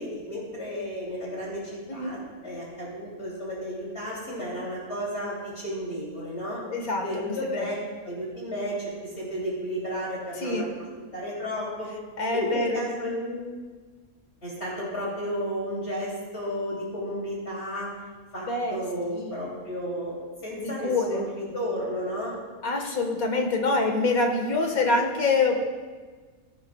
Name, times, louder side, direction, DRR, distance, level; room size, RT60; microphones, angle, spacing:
voice 1, 0.0-6.6 7.0-10.7 11.1-11.9 12.3-13.4 14.4-17.9 18.3-22.4, equal, 45° left, -6 dB, 3.2 m, -33 dB
voice 2, 6.7-7.7 10.4-10.7 12.2-12.8 18.5-18.8 19.1-19.5 20.6-21.3 22.6-25.6, left 3 dB, 75° left, 3 dB, 2.0 m, -26 dB
17.5 x 13.0 x 2.4 m, 1.4 s
omnidirectional pair, 1.5 m